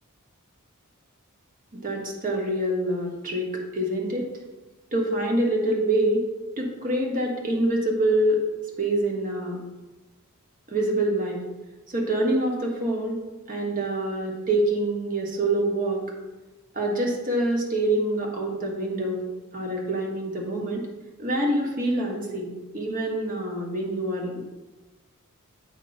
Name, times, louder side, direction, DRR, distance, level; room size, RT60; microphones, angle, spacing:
voice 1, 1.7-4.3 4.9-6.3 6.6-8.4 8.8-9.6 10.7-11.4 11.9-13.2 13.5-16.0 16.7-19.2 19.5-20.8 21.2-24.4, right 1 dB, 40° right, 0 dB, 1.3 m, -26 dB
8.2 x 3.0 x 5.2 m, 1.1 s
head